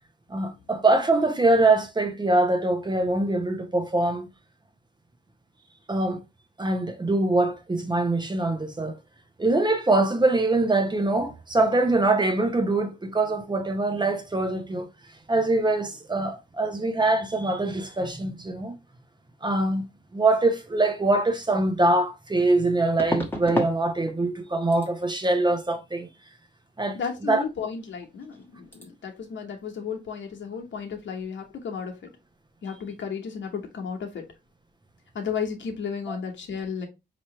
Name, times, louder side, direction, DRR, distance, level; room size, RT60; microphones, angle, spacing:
voice 1, 0.3-4.3 5.9-6.2 6.6-9.0 9.4-14.9 15.3-18.8 19.4-19.9 20.1-26.1 26.8-27.0 27.3-27.4 36.1-36.2, right 2 dB, 25° right, 0.8 m, -23 dB
sound 1, 21.4-21.5 23.0-23.8 24.1-24.4 24.7-24.9 27.8-28.0 28.2-28.4 28.7-28.8, left 1 dB, 10° left, 1.1 m, -30 dB
voice 2, 26.9-32.1 32.6-34.2 35.1-36.9, left 6 dB, 80° left, 1.2 m, -33 dB
4.5 x 3.1 x 2.9 m
cardioid pair, 90°, 19 cm